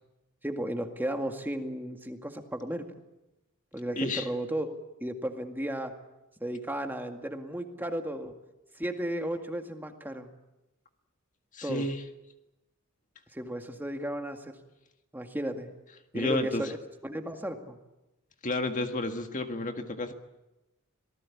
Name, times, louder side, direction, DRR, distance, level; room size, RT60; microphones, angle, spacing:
voice 1, 0.4-2.9 3.7-4.7 5.0-5.9 6.4-8.3 8.8-10.3 11.6-11.9 13.3-14.5 15.1-15.7 16.1-16.8 17.0-17.8, right 1 dB, 10° right, 4 dB, 2.0 m, -34 dB
voice 2, 4.0-4.3 11.5-12.0 16.1-16.7 18.4-20.1, left 2 dB, 35° left, 6 dB, 1.7 m, -31 dB
26.5 x 19.0 x 8.6 m, 0.98 s
head